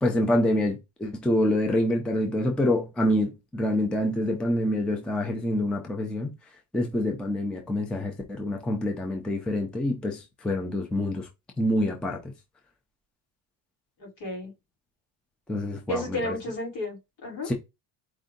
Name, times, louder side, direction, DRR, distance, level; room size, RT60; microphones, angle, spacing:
voice 1, 0.0-6.3 6.7-11.3 11.6-12.3 15.5-16.3 17.5-17.6, left 1 dB, ahead, 0.4 m, -26 dB
voice 2, 14.0-14.5 15.9-17.5, left 1 dB, 65° left, 2.9 m, -32 dB
4.6 x 2.6 x 3.8 m
cardioid pair, 170°, 48 cm